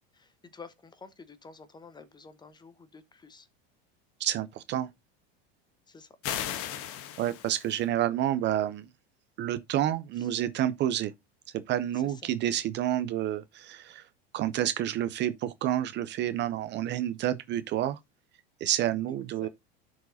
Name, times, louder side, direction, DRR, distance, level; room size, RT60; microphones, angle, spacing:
voice 1, 0.1-3.5 5.9-6.1 10.2-10.3 11.9-12.3 19.4-19.5, left 4 dB, 15° left, 0.9 m, -50 dB
voice 2, 4.2-4.9 7.2-8.9 9.4-11.1 11.7-14.1 14.3-18.0 18.6-19.5, right 12 dB, 40° right, 0.5 m, -29 dB
sound 1, 6.2-7.8, left 10 dB, 50° left, 1.2 m, -36 dB
12.5 x 4.8 x 2.6 m
supercardioid pair, 120°, 29 cm